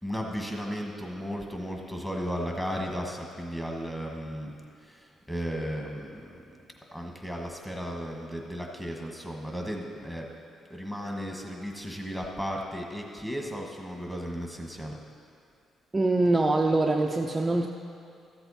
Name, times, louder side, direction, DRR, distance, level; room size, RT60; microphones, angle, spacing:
voice 1, 0.0-4.5 4.8-6.3 6.9-10.2 10.7-15.0, equal, 10° left, 0 dB, 1.6 m, -35 dB
voice 2, 15.9-17.7, right 2 dB, 20° right, 1 dB, 0.5 m, -24 dB
14.0 x 7.9 x 4.3 m, 2.5 s
cardioid pair, 90°, 0 cm